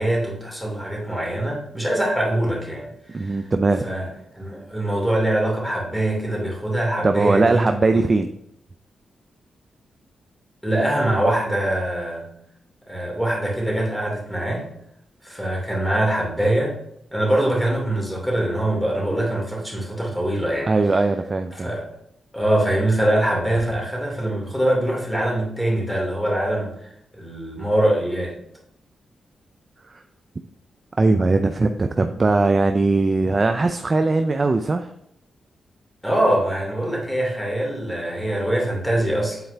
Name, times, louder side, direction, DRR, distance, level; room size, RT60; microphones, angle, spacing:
voice 1, 0.0-3.4 3.8-4.1 4.3-8.0 10.6-12.3 12.9-14.7 15.2-16.8 17.1-20.7 21.5-21.8 22.3-28.4 36.0-39.4, right 1 dB, 5° left, -2 dB, 2.8 m, -23 dB
voice 2, 3.1-3.8 7.0-8.3 20.7-21.7 29.9-30.0 31.0-34.9, right 3 dB, 40° right, 7 dB, 0.4 m, -20 dB
8.1 x 4.3 x 3.4 m, 0.75 s
supercardioid pair, 55°, 0 cm